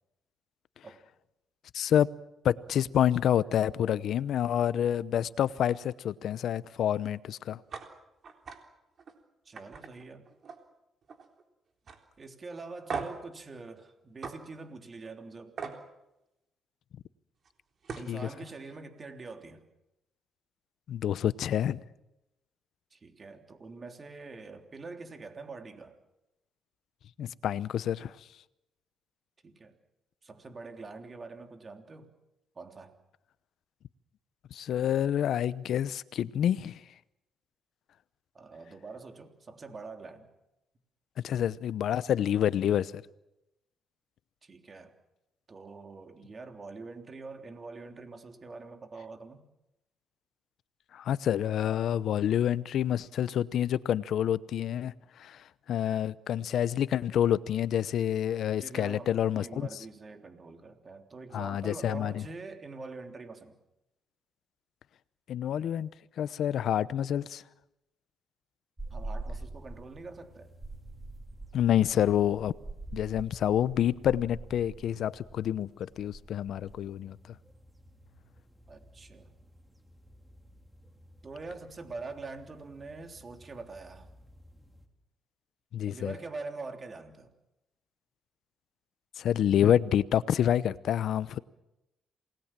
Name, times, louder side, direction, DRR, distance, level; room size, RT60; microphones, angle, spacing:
voice 1, 1.7-2.1 2.4-7.6 18.1-18.3 20.9-21.8 27.2-28.2 34.5-36.8 41.2-43.0 50.9-59.7 61.3-62.2 65.3-65.9 66.2-67.4 71.5-72.5 72.9-77.2 85.7-86.1 89.2-91.4, left 10 dB, 70° left, 0.8 m, -28 dB
sound 1, 7.7-7.9 8.2-8.6 9.0-9.1 9.6-10.7 11.0-11.4 11.9-12.0 12.9-13.3 14.2-14.4 15.6-15.8 17.4-17.5 17.8-18.1, right 5 dB, 50° right, 3.7 m, -38 dB
voice 2, 9.4-10.3 12.2-15.6 17.9-19.6 22.9-26.0 29.4-29.8 30.2-32.1 32.5-32.9 38.3-40.3 44.4-44.9 45.5-49.5 58.5-63.6 68.9-70.5 78.7-79.3 81.2-84.1 85.9-87.3, right 3 dB, 35° right, 3.3 m, -44 dB
sound 2, 68.8-84.9, right 2 dB, 10° right, 3.5 m, -47 dB
28.0 x 20.0 x 7.5 m
cardioid pair, 95°, 0 cm